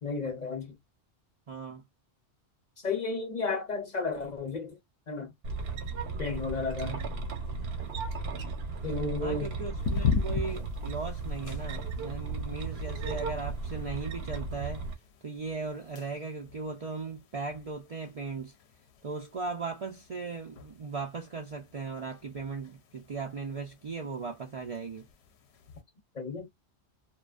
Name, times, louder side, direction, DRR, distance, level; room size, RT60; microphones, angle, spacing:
voice 1, 0.0-0.8 2.8-4.8 5.1-5.3 6.2-7.0 8.8-9.6 26.1-26.5, left 3 dB, 45° left, 0.8 m, -33 dB
voice 2, 1.5-1.8 6.8-7.1 9.2-14.9 15.2-18.5 19.0-25.1, right 4 dB, 50° right, 0.5 m, -38 dB
sound 1, 5.4-14.9, right 3 dB, 65° right, 1.0 m, -35 dB
sound 2, 9.8-25.8, left 6 dB, 70° left, 0.8 m, -39 dB
2.4 x 2.2 x 2.3 m
omnidirectional pair, 1.1 m